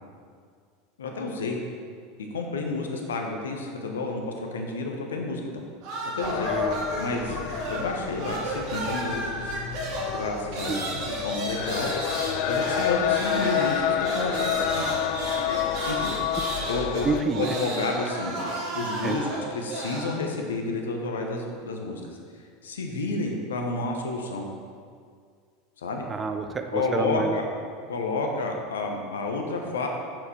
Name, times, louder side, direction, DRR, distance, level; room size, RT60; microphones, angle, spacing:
voice 1, 1.0-1.6 2.3-5.4 6.1-6.5 7.0-7.4 7.7-9.6 10.1-11.9 12.5-14.9 15.5-15.6 15.9-16.2 16.7-18.4 18.7-24.5 25.8-26.1 26.7-27.4 27.9-29.9, left 3 dB, 70° left, 2 dB, 1.0 m, -30 dB
sound 1, 5.8-20.1, right 1 dB, 50° right, 1.9 m, -32 dB
sound 2, 6.2-17.2, left 10 dB, 50° left, 0.4 m, -30 dB
voice 2, 6.4-6.9 10.7-10.8 17.0-17.5 19.0-19.4 26.1-27.4, right 4 dB, 20° right, 6 dB, 0.6 m, -28 dB
7.7 x 6.8 x 4.4 m, 2.1 s
figure-of-eight pair, 80°, 0 cm